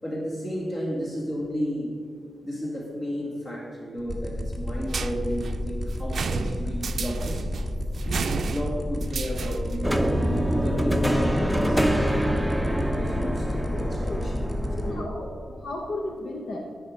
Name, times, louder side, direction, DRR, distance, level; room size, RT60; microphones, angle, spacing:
voice 1, 0.0-2.0 2.4-7.5 8.0-10.3 10.6-11.9 12.5-15.3, equal, 45° left, -3 dB, 2.1 m, -33 dB
sound 1, 4.0-14.8, left 1 dB, 25° left, 1.8 m, -31 dB
sound 2, 4.9-9.9, right 5 dB, 70° right, 0.4 m, -33 dB
sound 3, 9.8-15.1, equal, ahead, 0.7 m, -25 dB
voice 2, 13.7-14.3 14.8-15.2 15.6-16.8, left 2 dB, 75° left, 1 dB, 0.8 m, -34 dB
12.5 x 5.7 x 5.2 m, 2.3 s
cardioid pair, 85°, 0 cm